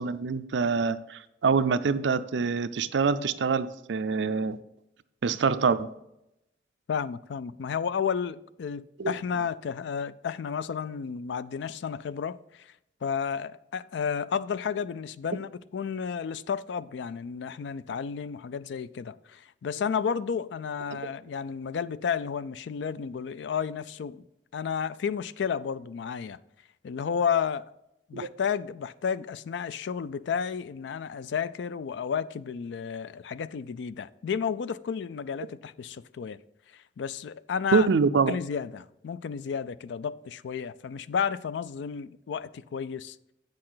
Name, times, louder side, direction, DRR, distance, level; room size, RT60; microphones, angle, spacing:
voice 1, 0.0-4.6 5.2-5.9 9.0-9.1 28.1-28.3 37.7-38.3, right 5 dB, 80° right, 0.5 m, -25 dB
voice 2, 6.9-12.7 13.0-24.2 24.5-26.4 26.8-27.7 28.1-36.4 36.7-37.9 38.3-43.2, left 6 dB, 75° left, 0.4 m, -32 dB
8.5 x 6.6 x 3.9 m
head